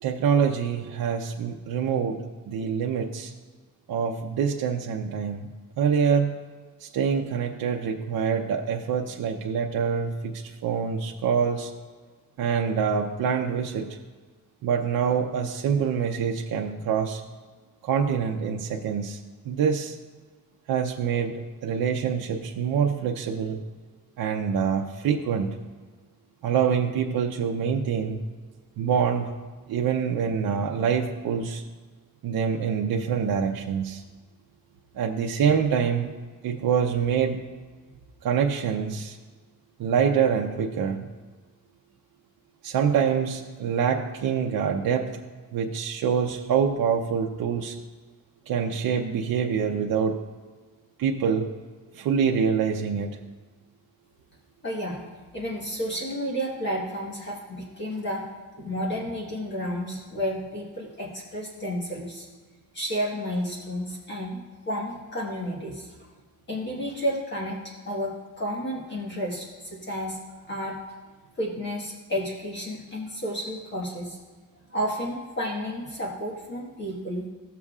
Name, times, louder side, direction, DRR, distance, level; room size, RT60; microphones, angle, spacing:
voice 1, 0.0-3.3 3.9-5.5 5.8-6.4 6.8-11.7 12.4-13.9 14.6-17.2 17.8-19.2 19.4-20.0 20.7-23.6 24.2-25.5 26.4-28.2 28.8-29.3 29.7-31.6 32.2-34.0 34.9-36.1 36.4-37.4 38.2-39.2 39.8-41.1 42.6-45.1 45.5-47.8 48.5-50.2 51.0-51.5 51.9-53.2, right 7 dB, 75° right, 0 dB, 0.7 m, -25 dB
voice 2, 54.6-55.0 55.3-58.2 58.6-62.3 62.7-66.1 66.5-70.2 70.5-70.8 71.4-74.2 74.7-77.3, equal, 30° left, -4 dB, 1.5 m, -31 dB
15.0 x 7.0 x 2.4 m, 1.4 s
wide cardioid pair, 155°, 36 cm